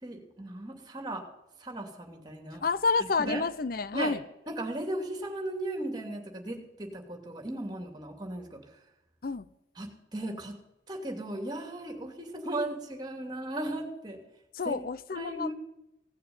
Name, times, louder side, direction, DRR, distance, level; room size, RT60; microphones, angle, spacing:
voice 1, 0.0-1.2 1.6-2.6 3.2-3.4 3.9-4.1 4.5-8.6 9.8-10.5 10.9-14.2 14.6-14.8 15.2-15.5, right 1 dB, 25° right, 2.7 m, -36 dB
voice 2, 2.6-4.2 9.2-9.5 14.5-15.5, left 4 dB, 50° left, 0.6 m, -29 dB
17.5 x 6.8 x 9.5 m
head